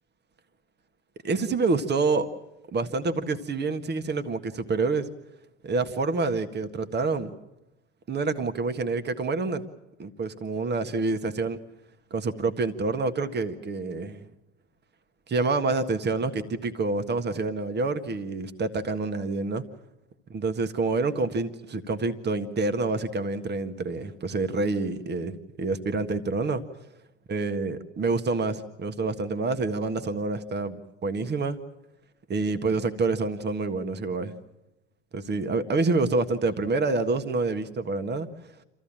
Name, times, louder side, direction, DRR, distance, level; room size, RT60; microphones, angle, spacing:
voice 1, 1.2-2.3 2.7-5.1 5.6-7.3 8.1-9.6 10.0-11.6 12.1-14.2 15.3-19.7 20.3-26.6 27.3-31.6 32.3-34.3 35.1-38.3, right 3 dB, 30° right, 9 dB, 1.7 m, -27 dB
27.0 x 15.0 x 8.9 m, 0.93 s
hypercardioid pair, 75°, 34 cm